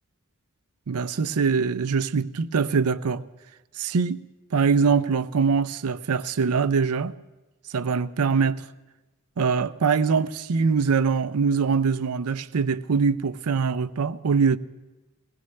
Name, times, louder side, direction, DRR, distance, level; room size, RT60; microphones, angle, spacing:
voice 1, 0.9-3.2 3.8-4.2 4.5-7.1 7.7-8.6 9.4-14.6, right 5 dB, 80° right, 0.5 m, -23 dB
21.0 x 16.5 x 3.2 m
head